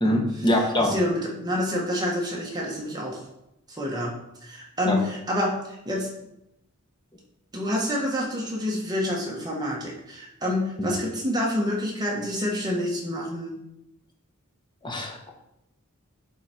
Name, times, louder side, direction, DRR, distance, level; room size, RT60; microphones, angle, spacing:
voice 1, 0.0-0.9 4.9-5.0 10.8-10.9 14.8-15.3, left 1 dB, 20° left, 1 dB, 1.4 m, -24 dB
voice 2, 0.8-3.2 3.7-4.1 4.4-6.1 7.5-13.6, left 1 dB, 20° right, -3 dB, 1.5 m, -28 dB
11.0 x 4.1 x 4.5 m, 0.85 s
head